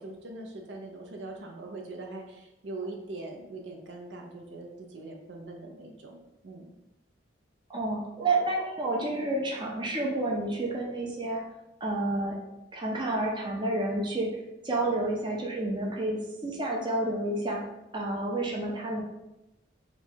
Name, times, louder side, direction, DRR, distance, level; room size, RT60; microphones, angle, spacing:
voice 1, 0.0-6.7, right 2 dB, 75° right, 1 dB, 0.6 m, -42 dB
voice 2, 7.7-11.4 11.8-12.4 12.7-14.3 14.6-17.6 17.9-19.0, right 2 dB, 25° right, -2 dB, 0.6 m, -30 dB
3.0 x 2.3 x 4.3 m, 0.93 s
head